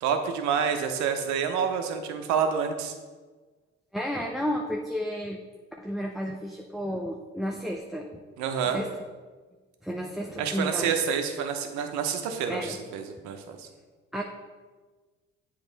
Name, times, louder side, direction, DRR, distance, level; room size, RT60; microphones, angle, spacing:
voice 1, 0.0-2.9 8.4-8.8 10.4-13.7, right 7 dB, 70° right, 6 dB, 0.8 m, -28 dB
voice 2, 3.9-5.4 5.8-8.2 8.7-8.9 9.8-11.0 12.5-12.9 14.1-14.2, equal, ahead, 1 dB, 0.5 m, -32 dB
7.9 x 3.2 x 3.9 m, 1.4 s
hypercardioid pair, 65°, 29 cm